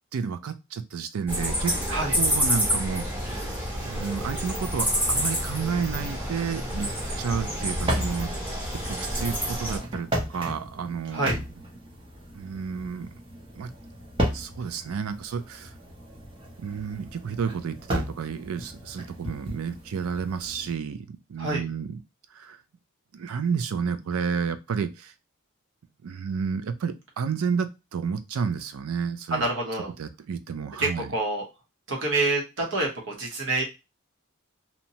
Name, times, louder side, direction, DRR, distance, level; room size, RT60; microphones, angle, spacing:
voice 1, 0.1-1.7 2.2-3.0 3.7-6.9 7.2-8.3 8.9-11.4 12.3-13.1 13.6-13.7 14.3-15.7 16.6-21.0 21.3-22.0 22.4-22.6 23.1-25.1 26.0-29.4 30.0-31.1, right 6 dB, 80° right, 10 dB, 0.4 m, -31 dB
sound 1, 1.3-9.8, equal, 10° right, 1.0 m, -28 dB
sound 2, 4.2-20.7, equal, 25° right, 0.7 m, -36 dB
voice 2, 21.4-21.7 29.3-29.9 30.8-31.4 31.9-33.6, right 2 dB, 60° right, -1 dB, 0.9 m, -27 dB
2.8 x 2.1 x 2.7 m, 0.25 s
head